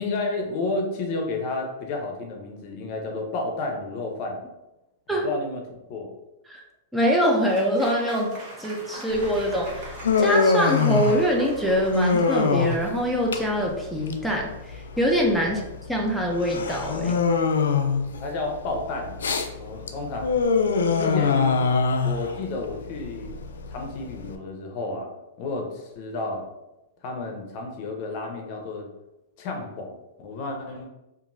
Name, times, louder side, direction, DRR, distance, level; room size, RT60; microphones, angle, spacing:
voice 1, 0.0-4.4 5.1-5.6 5.9-6.1 15.4-15.6 18.2-19.2 19.6-20.5 20.9-21.6 22.0-23.3 23.7-25.1 25.4-26.5 27.0-28.9 29.4-30.9, left 3 dB, 45° left, 2 dB, 0.6 m, -31 dB
voice 2, 6.9-8.3 8.6-9.9 10.2-15.6 15.9-17.2, equal, 5° right, -1 dB, 0.4 m, -24 dB
Applause / Crowd, 7.4-14.2, right 1 dB, 45° right, 0.9 m, -42 dB
Human voice, 9.1-24.3, left 4 dB, 90° left, 0.3 m, -24 dB
2.9 x 2.5 x 2.5 m, 0.96 s
hypercardioid pair, 135°, 0 cm